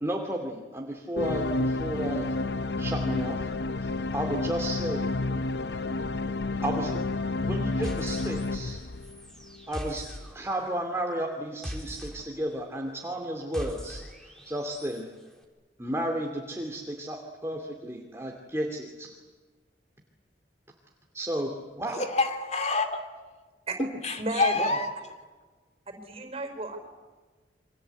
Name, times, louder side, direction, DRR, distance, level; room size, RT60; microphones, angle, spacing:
voice 1, 0.0-2.3 2.8-3.5 3.8-5.1 6.6-7.0 7.4-8.8 9.7-15.1 15.8-19.1 21.1-21.5 21.8-22.1 23.8-23.9 24.6-24.7, right 1 dB, 15° right, 1 dB, 2.6 m, -33 dB
sound 1, 1.2-9.6, left 2 dB, 65° left, 0.8 m, -30 dB
sound 2, 7.8-8.7 9.0-15.0, equal, 5° left, 4.1 m, -42 dB
voice 2, 21.9-23.1 24.0-25.0, left 3 dB, 40° left, 7 dB, 2.7 m, -27 dB
voice 3, 24.2-24.6 25.9-26.8, right 2 dB, 35° right, 6 dB, 5.0 m, -33 dB
29.0 x 25.0 x 8.3 m, 1.3 s
head